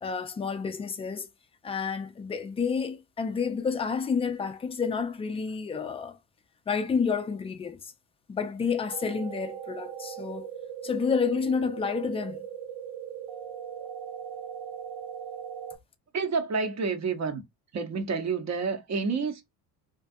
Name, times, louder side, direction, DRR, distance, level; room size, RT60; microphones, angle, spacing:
voice 1, 0.0-1.3 1.6-6.2 6.7-7.8 8.3-10.5 10.8-12.5, left 5 dB, 15° left, 0.3 m, -29 dB
sound 1, 8.9-15.8, right 8 dB, 85° right, 1.4 m, -39 dB
voice 2, 16.1-17.4 17.7-19.4, right 4 dB, 40° right, 0.8 m, -29 dB
2.6 x 2.3 x 2.6 m
supercardioid pair, 80°, 44 cm